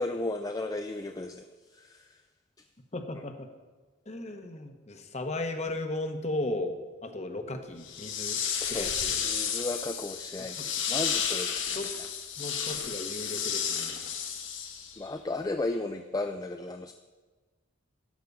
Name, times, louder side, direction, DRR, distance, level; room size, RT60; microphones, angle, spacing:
voice 1, 0.0-1.5 1.7-2.2 8.6-8.9 9.2-10.6 10.9-12.1 15.0-16.9, left 2 dB, 20° left, 7 dB, 0.3 m, -34 dB
voice 2, 2.9-3.5 4.1-8.4 8.7-9.2 10.6-10.7 11.7-11.9 12.4-14.0, left 2 dB, 35° left, 6 dB, 1.0 m, -36 dB
sound 1, 7.8-15.1, left 7 dB, 75° left, 1.4 m, -32 dB
12.5 x 5.3 x 8.2 m, 1.3 s
head